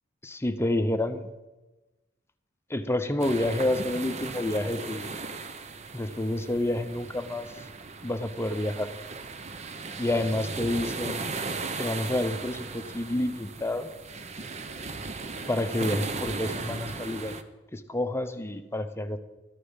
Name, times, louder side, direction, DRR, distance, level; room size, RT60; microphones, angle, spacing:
voice 1, 0.2-1.3 2.7-5.2 5.9-7.6 8.0-8.9 10.0-11.5 11.8-13.9 15.5-17.4 17.7-19.2, left 1 dB, 15° left, 8 dB, 0.8 m, -29 dB
sound 1, 3.2-17.4, right 4 dB, 35° right, 0.7 m, -37 dB
13.0 x 10.5 x 5.7 m, 1.1 s
head